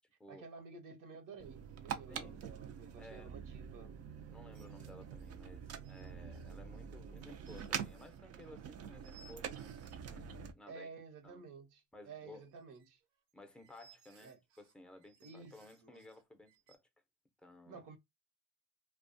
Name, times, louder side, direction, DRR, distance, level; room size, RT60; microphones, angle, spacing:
voice 1, 0.3-3.9 10.7-13.0 14.2-14.4 15.2-15.5 15.8-16.0 17.7-18.0, right 4 dB, 60° right, 1.0 m, -52 dB
sound 1, 1.4-10.5, right 8 dB, 45° right, 0.5 m, -45 dB
sound 2, 1.7-1.8 4.5-10.0 12.2-16.8, right 3 dB, 90° right, 0.7 m, -65 dB
voice 2, 2.1-2.5 2.9-3.4 4.3-9.7 10.1-10.9 11.2-11.4 11.9-12.4 13.3-16.8 17.4-17.9, left 1 dB, 5° left, 0.6 m, -56 dB
2.3 x 2.3 x 2.6 m
supercardioid pair, 80°, 36 cm